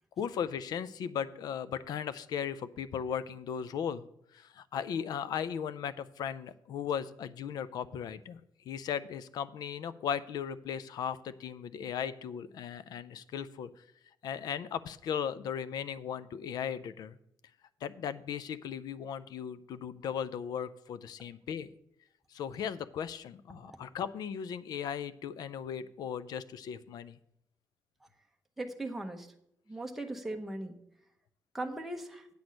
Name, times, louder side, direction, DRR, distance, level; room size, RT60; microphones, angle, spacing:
voice 1, 0.2-4.1 4.3-13.8 14.2-17.2 17.8-21.7 22.3-27.2, left 8 dB, 75° left, 16 dB, 0.5 m, -37 dB
voice 2, 28.6-29.3 29.7-30.7 31.5-32.3, right 2 dB, 5° right, 2 dB, 0.9 m, -38 dB
8.5 x 6.1 x 6.4 m, 0.76 s
wide cardioid pair, 180°, 7 cm